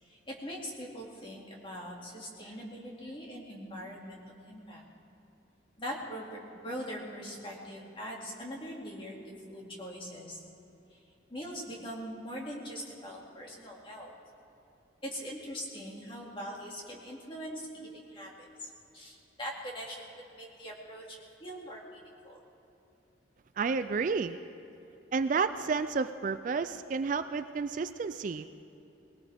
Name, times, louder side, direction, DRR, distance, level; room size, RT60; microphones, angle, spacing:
voice 1, 0.0-4.8 5.8-10.4 10.9-11.0 11.3-14.1 15.0-20.0 20.3-22.0 22.2-22.4, equal, 25° left, -2 dB, 2.4 m, -42 dB
voice 2, 23.6-24.4 25.1-28.5, right 5 dB, 40° right, 11 dB, 0.3 m, -31 dB
20.5 x 18.5 x 3.5 m, 3.0 s
head